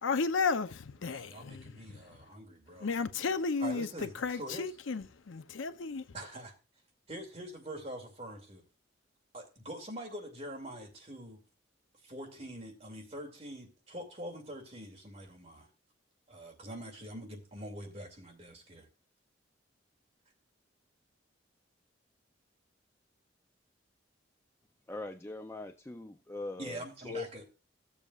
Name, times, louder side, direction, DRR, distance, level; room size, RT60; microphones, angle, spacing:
voice 1, 0.0-2.0 2.8-6.0, left 4 dB, 80° left, 0.6 m, -33 dB
voice 2, 1.0-2.9 3.6-4.7 6.1-6.5 7.1-8.6 9.3-11.4 12.0-15.7 16.3-18.9 26.6-27.4, right 1 dB, 30° right, 2.4 m, -44 dB
voice 3, 24.9-26.8 27.1-27.3, left 3 dB, 10° left, 0.3 m, -40 dB
15.5 x 7.0 x 2.4 m
head